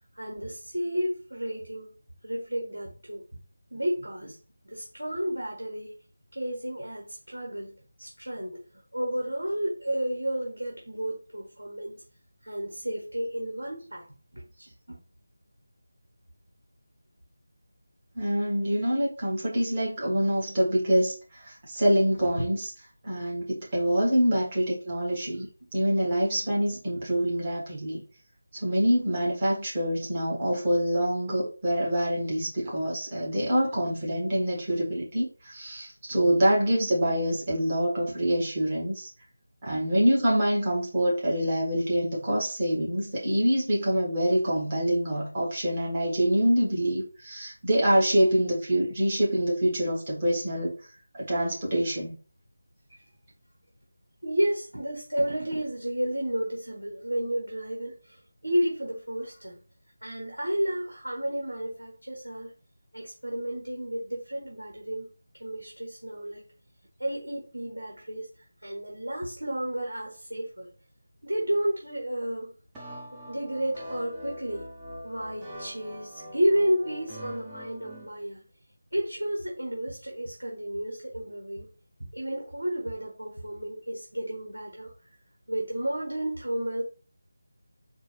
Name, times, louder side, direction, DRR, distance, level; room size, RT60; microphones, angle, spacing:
voice 1, 0.1-1.9 2.2-3.2 3.7-4.4 4.6-5.9 6.3-8.6 8.9-12.0 12.4-14.0 14.3-15.0 22.4-22.5 24.3-24.4 25.4-25.5 36.1-36.4 39.6-40.0 54.2-59.6 60.0-62.5 62.9-65.1 65.3-66.5 67.0-68.3 68.6-70.7 71.2-72.5 73.3-74.6 75.0-78.4 78.9-81.7 82.1-84.9 85.5-86.8, equal, 80° right, -1 dB, 1.4 m, -31 dB
voice 2, 18.2-22.7 23.0-28.0 28.5-39.1 39.6-52.1, equal, 25° right, -4 dB, 1.8 m, -26 dB
sound 1, 72.7-78.1, equal, 10° right, 0.9 m, -42 dB
4.4 x 2.5 x 3.4 m, 0.36 s
figure-of-eight pair, 165°, 0 cm